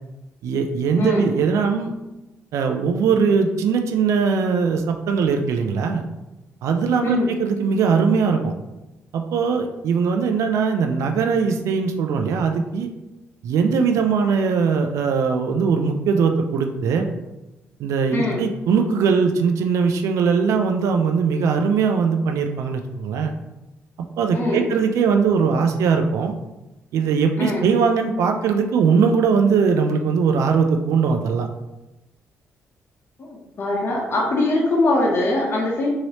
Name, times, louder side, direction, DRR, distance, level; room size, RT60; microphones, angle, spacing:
voice 1, 0.4-1.9 2.5-6.0 6.6-8.5 9.1-12.9 13.4-17.1 17.8-23.3 24.2-26.3 26.9-31.5, right 5 dB, 80° right, 5 dB, 0.3 m, -20 dB
voice 2, 33.6-35.9, left 2 dB, 50° left, -3 dB, 0.8 m, -21 dB
3.0 x 2.8 x 2.8 m, 0.98 s
cardioid pair, 80°, 5 cm